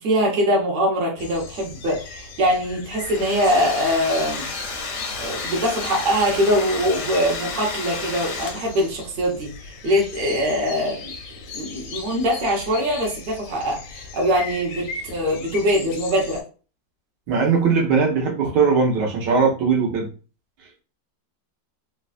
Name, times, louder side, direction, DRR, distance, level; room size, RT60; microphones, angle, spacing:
voice 1, 0.0-4.4 5.2-11.1 11.5-16.4, equal, 45° right, -2 dB, 0.7 m, -22 dB
sound 1, 1.2-16.4, left 4 dB, 85° left, 1.3 m, -38 dB
Domestic sounds home sounds, 2.8-8.9, left 3 dB, 65° left, 0.7 m, -32 dB
voice 2, 17.3-20.1, right 5 dB, 70° right, 0 dB, 1.3 m, -19 dB
3.2 x 2.2 x 2.4 m, 0.36 s
omnidirectional pair, 2.0 m